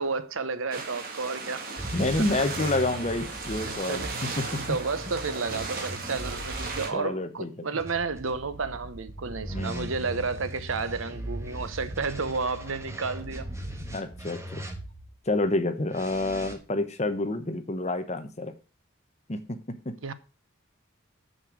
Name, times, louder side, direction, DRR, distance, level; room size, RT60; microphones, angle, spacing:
voice 1, 0.0-1.7 2.2-2.3 3.6-4.4 4.7-13.5 20.0-20.1, right 4 dB, 80° right, 0.9 m, -31 dB
sound 1, 0.7-6.9, right 4 dB, 45° right, 1.9 m, -36 dB
sound 2, 1.8-6.8 7.8-15.1 15.9-16.5, right 1 dB, 15° right, 1.5 m, -39 dB
voice 2, 1.9-4.8 6.9-7.5 9.5-9.9 13.9-14.6 15.3-18.5 19.3-20.0, left 2 dB, 35° left, 1.0 m, -29 dB
6.9 x 6.5 x 6.1 m
head